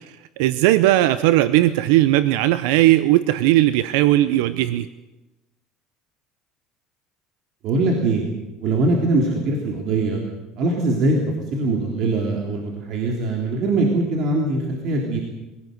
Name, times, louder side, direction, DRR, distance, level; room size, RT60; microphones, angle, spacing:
voice 1, 0.4-4.9, right 15 dB, 85° right, 13 dB, 0.7 m, -17 dB
voice 2, 7.6-8.3 8.6-10.2 10.6-11.2 11.5-15.2, right 2 dB, 50° right, 1 dB, 3.5 m, -22 dB
24.0 x 17.0 x 7.9 m, 1.1 s
cardioid pair, 135°, 0 cm